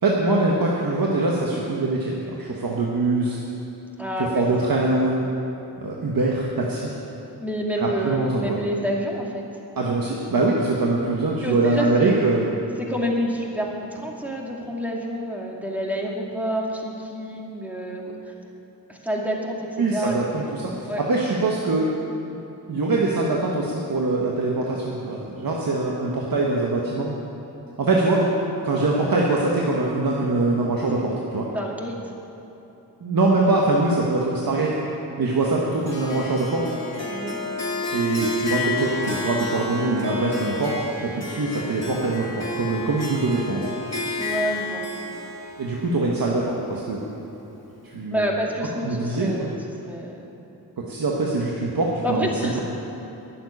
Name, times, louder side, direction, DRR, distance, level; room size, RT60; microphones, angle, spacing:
voice 1, 0.0-3.4 4.3-5.2 5.8-6.9 7.8-8.6 9.8-12.5 19.8-21.9 22.7-27.1 27.8-28.3 28.6-31.5 33.0-34.7 35.2-36.6 37.9-40.7 41.0-43.7 45.6-47.0 47.8-48.2 48.8-49.5 50.8-52.6, right 2 dB, 60° right, -3 dB, 1.5 m, -23 dB
voice 2, 4.0-4.9 7.4-9.5 11.4-12.2 12.8-18.3 18.9-20.5 20.8-21.0 31.5-32.0 37.1-37.4 44.2-44.8 48.1-49.6 49.9-50.2 52.0-52.6, equal, 5° right, -2 dB, 2.3 m, -28 dB
Harp, 35.9-47.1, left 2 dB, 40° left, 2.7 m, -31 dB
11.0 x 7.6 x 9.9 m, 2.9 s
cardioid pair, 75°, 38 cm